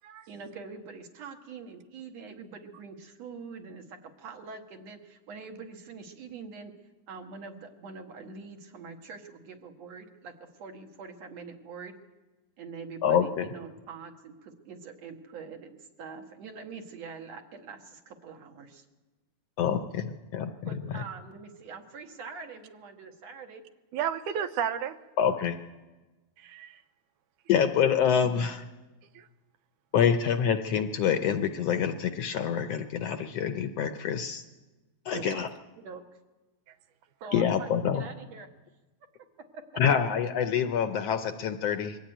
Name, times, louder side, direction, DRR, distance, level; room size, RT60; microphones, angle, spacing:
voice 1, 0.3-6.7 7.1-11.9 12.6-18.9 20.7-23.6 28.2-28.5 35.3-35.4 35.8-36.2 37.2-38.5 39.5-39.8, right 5 dB, 60° right, 4 dB, 2.8 m, -44 dB
voice 2, 13.0-13.5 19.6-21.0 25.2-25.6 27.5-28.6 29.9-34.4 35.1-35.5 37.3-38.0 39.8-42.0, left 8 dB, 70° left, 8 dB, 1.6 m, -26 dB
voice 3, 23.9-25.0 26.4-26.8 29.2-29.3 35.1-35.3, right 8 dB, 85° right, 10 dB, 2.4 m, -32 dB
22.5 x 14.5 x 9.1 m, 1.2 s
omnidirectional pair, 3.5 m